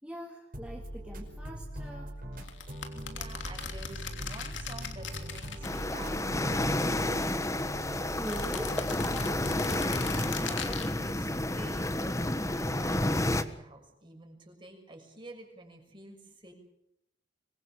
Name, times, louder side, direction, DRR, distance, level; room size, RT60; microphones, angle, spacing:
voice 1, 0.0-2.2 8.2-9.5, right 1 dB, 5° right, -1 dB, 2.6 m, -42 dB
sound 1, 0.5-10.3, equal, 50° right, 5.4 m, -41 dB
sound 2, 2.4-6.2 6.5-7.6 8.1-10.9, left 7 dB, 85° left, 3.1 m, -40 dB
voice 2, 2.9-7.6 10.1-16.5, right 2 dB, 25° right, 3 dB, 6.5 m, -49 dB
sound 3, 5.6-13.4, left 1 dB, 15° left, 1.4 m, -30 dB
25.5 x 21.5 x 7.2 m, 0.80 s
head